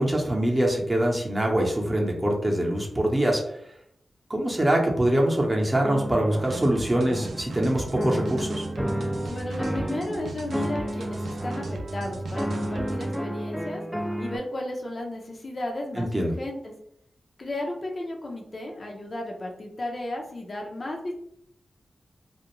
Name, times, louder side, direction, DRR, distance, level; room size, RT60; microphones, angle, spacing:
voice 1, 0.0-3.4 4.3-8.6 15.9-16.3, right 1 dB, 25° right, 0 dB, 0.7 m, -24 dB
sound 1, 5.8-7.6 7.9-10.2 10.5-11.8 12.3-14.4, equal, 5° right, 0.3 m, -31 dB
sound 2, 6.4-13.2, right 2 dB, 80° right, 0.4 m, -35 dB
voice 2, 9.3-13.8 14.2-16.7 17.4-21.1, left 1 dB, 50° left, 0 dB, 0.6 m, -34 dB
2.4 x 2.1 x 3.0 m, 0.70 s
cardioid pair, 60°, 0 cm